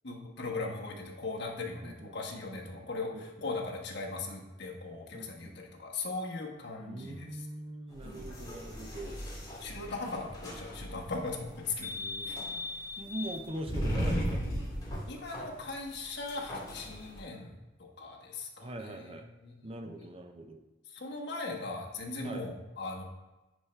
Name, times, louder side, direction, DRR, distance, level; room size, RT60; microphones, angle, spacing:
voice 1, 0.0-7.3 9.6-11.9 12.2-12.4 15.1-19.2 19.4-20.0 20.9-23.0, left 3 dB, 65° left, -1 dB, 1.3 m, -39 dB
voice 2, 1.8-2.9 3.1-3.5 5.1-5.6 6.8-9.2 11.9-12.4 13.0-14.4 18.6-19.3 19.6-20.6 22.2-22.5, right 1 dB, 30° right, 6 dB, 0.5 m, -43 dB
sound 1, 7.9-17.2, equal, 20° left, 2.0 m, -37 dB
10.0 x 4.3 x 3.3 m, 1.1 s
head